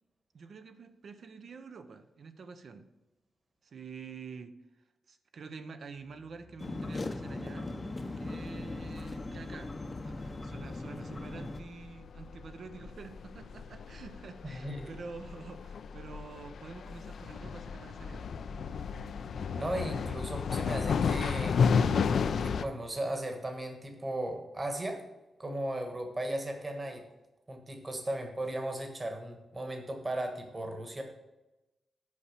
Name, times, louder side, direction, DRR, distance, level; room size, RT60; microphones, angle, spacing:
voice 1, 0.3-2.9 3.6-4.5 5.1-7.7 8.2-9.7 10.0-18.3, right 5 dB, 55° right, 9 dB, 0.7 m, -47 dB
sound 1, 6.0-12.5, equal, ahead, 1.1 m, -53 dB
sound 2, 6.6-11.6, left 2 dB, 25° left, 0.7 m, -39 dB
sound 3, 8.4-22.6, left 6 dB, 65° left, 0.4 m, -33 dB
voice 2, 14.4-14.9 19.6-21.7 22.4-25.0 25.4-27.0 27.5-31.0, right 1 dB, 20° right, 4 dB, 1.4 m, -36 dB
8.4 x 5.6 x 6.5 m, 1.0 s
wide cardioid pair, 155°, 0 cm